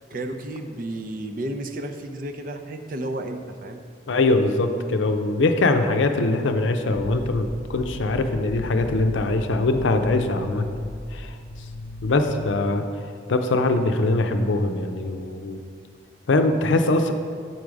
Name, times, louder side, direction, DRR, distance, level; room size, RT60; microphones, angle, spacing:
voice 1, 0.1-3.9, right 1 dB, 45° right, 6 dB, 0.5 m, -32 dB
voice 2, 4.1-10.7 11.1-11.4 12.0-12.8 13.3-15.6 16.3-17.1, left 2 dB, 80° left, 6 dB, 0.5 m, -22 dB
sound 1, 6.9-12.5, left 2 dB, 35° left, 0.5 m, -35 dB
7.7 x 4.7 x 5.1 m, 2.2 s
head